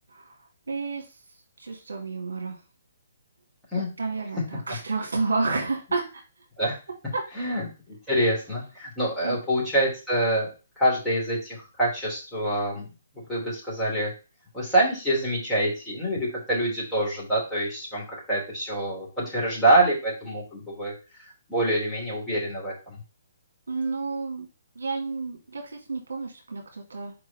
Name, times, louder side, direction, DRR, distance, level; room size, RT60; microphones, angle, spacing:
voice 1, 0.7-1.0 1.6-2.6 4.0-6.2 7.1-7.2 9.2-9.4 23.7-24.5 24.8-27.1, right 3 dB, 65° right, 0 dB, 1.8 m, -30 dB
voice 2, 7.3-10.5 10.8-12.9 13.1-14.1 14.5-20.9 21.2-23.0, right 1 dB, 5° left, -7 dB, 3.1 m, -26 dB
4.8 x 3.9 x 5.2 m, 0.32 s
figure-of-eight pair, 130°, 0 cm